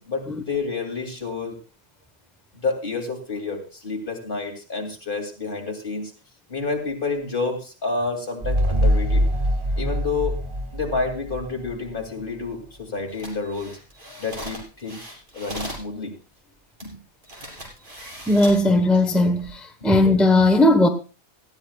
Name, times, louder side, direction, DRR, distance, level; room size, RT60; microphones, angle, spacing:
voice 1, 0.0-1.6 2.5-6.1 6.5-9.2 9.8-10.4 10.7-13.8 14.2-16.1 16.8-17.0 19.8-19.9, left 4 dB, 50° left, 2.9 m, -29 dB
sound 1, 8.4-11.8, equal, 30° right, 0.9 m, -23 dB
sound 2, 13.1-15.9 16.8-16.9 17.2-18.7 19.2-19.5, equal, 45° right, 4.3 m, -38 dB
voice 2, 18.3-19.6 19.8-20.9, left 2 dB, ahead, 1.0 m, -17 dB
18.5 x 14.0 x 2.4 m
omnidirectional pair, 1.2 m